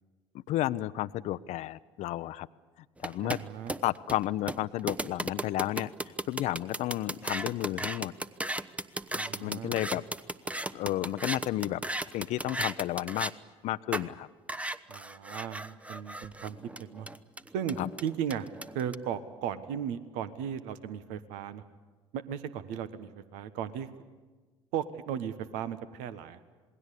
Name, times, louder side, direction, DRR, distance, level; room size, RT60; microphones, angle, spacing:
voice 1, 0.5-2.5 3.0-3.4 3.8-5.9 6.3-8.1 9.4-10.0 10.7-11.8 12.1-13.3 13.6-14.3 17.8-17.9, left 15 dB, 60° left, 16 dB, 0.7 m, -32 dB
sound 1, 3.0-13.3 13.9-14.1 14.5-18.9, right 1 dB, 10° right, 0.9 m, -35 dB
voice 2, 3.2-3.7 9.1-9.7 14.9-17.1 17.5-18.5 18.7-21.6 22.1-23.9 24.7-26.4, right 8 dB, 70° right, 12 dB, 1.3 m, -36 dB
27.5 x 20.0 x 8.4 m, 1.3 s
hypercardioid pair, 60°, 13 cm